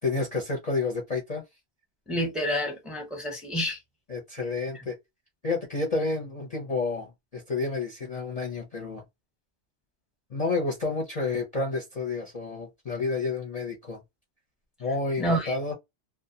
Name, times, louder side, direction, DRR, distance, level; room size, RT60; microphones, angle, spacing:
voice 1, 0.0-1.4 4.1-5.0 5.4-9.0 10.3-14.0 14.8-15.7, left 3 dB, 40° left, 0.6 m, -30 dB
voice 2, 2.1-3.8 15.2-15.6, equal, ahead, 0.7 m, -28 dB
2.4 x 2.1 x 2.6 m
omnidirectional pair, 1.2 m